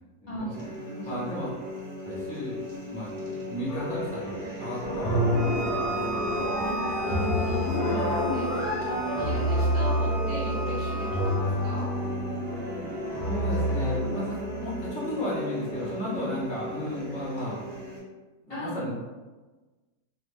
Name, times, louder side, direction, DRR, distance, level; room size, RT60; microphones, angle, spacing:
voice 1, 0.2-0.6 1.1-1.5 2.0-2.6 2.9-3.1 3.5-5.2 5.8-6.9 13.2-17.6 18.4-18.9, left 1 dB, 10° left, -7 dB, 0.4 m, -34 dB
sound 1, 0.5-18.0, left 1 dB, 40° right, 0.8 m, -37 dB
sound 2, 3.7-4.4 4.8-14.9, equal, 90° left, 0.4 m, -28 dB
voice 2, 5.2-5.7 6.6-6.7 7.0-11.9 16.0-16.3 18.5-18.8, right 1 dB, 55° left, -8 dB, 0.7 m, -37 dB
Bowed string instrument, 5.3-11.4, right 3 dB, 65° right, 1.1 m, -37 dB
2.5 x 2.5 x 3.2 m, 1.2 s
omnidirectional pair, 1.7 m